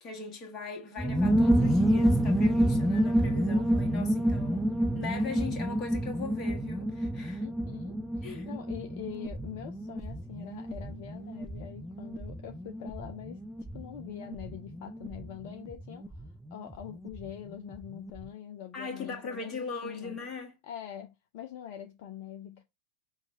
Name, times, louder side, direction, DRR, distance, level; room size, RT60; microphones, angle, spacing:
voice 1, 0.0-7.5 8.2-8.5 18.7-20.6, left 5 dB, 30° left, 1.4 m, -40 dB
sound 1, 1.0-17.3 17.5-17.6 17.8-18.2, right 1 dB, 5° right, 0.4 m, -29 dB
voice 2, 7.4-13.4 13.7-16.2 16.5-20.2 20.6-22.6, left 10 dB, 50° left, 0.5 m, -44 dB
5.4 x 2.4 x 4.0 m
figure-of-eight pair, 90°, 0 cm